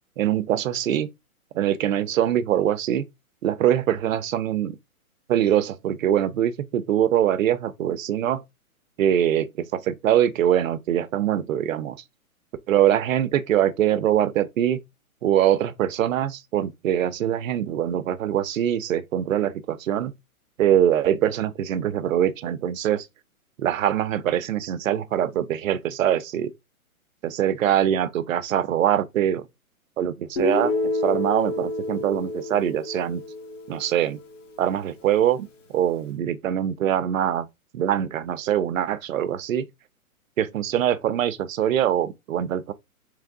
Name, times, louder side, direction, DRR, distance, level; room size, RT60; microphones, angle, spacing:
voice 1, 0.2-1.1 1.5-3.0 3.4-4.8 5.3-8.4 9.0-12.0 12.7-14.8 15.2-20.1 20.6-23.1 23.6-26.5 27.2-29.4 30.0-33.2 33.7-34.2 34.6-35.5 35.7-37.5 37.7-39.7 40.4-42.7, right 10 dB, 65° right, 0.6 m, -23 dB
Guitar, 30.4-34.3, left 1 dB, 55° left, 1.1 m, -29 dB
3.4 x 3.3 x 3.7 m
hypercardioid pair, 160°, 44 cm